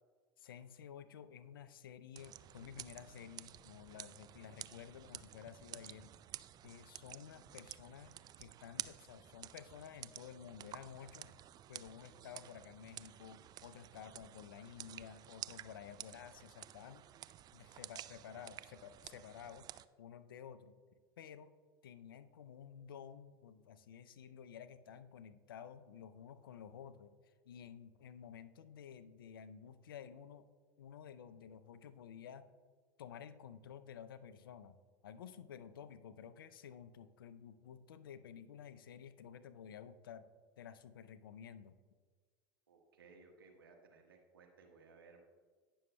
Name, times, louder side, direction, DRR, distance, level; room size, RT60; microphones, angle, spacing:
voice 1, 0.4-6.1 6.6-11.3 11.7-17.0 17.5-19.7 20.0-20.7 21.2-21.5 21.8-30.5 30.8-32.5 33.0-40.3 40.6-41.8, left 8 dB, 80° left, 13 dB, 0.5 m, -53 dB
sound 1, 2.2-19.9, right 12 dB, 35° right, 0.3 m, -52 dB
voice 2, 42.7-45.3, right 4 dB, 85° right, 1 dB, 1.4 m, -61 dB
17.5 x 6.3 x 2.2 m, 1.5 s
hypercardioid pair, 80°, 12 cm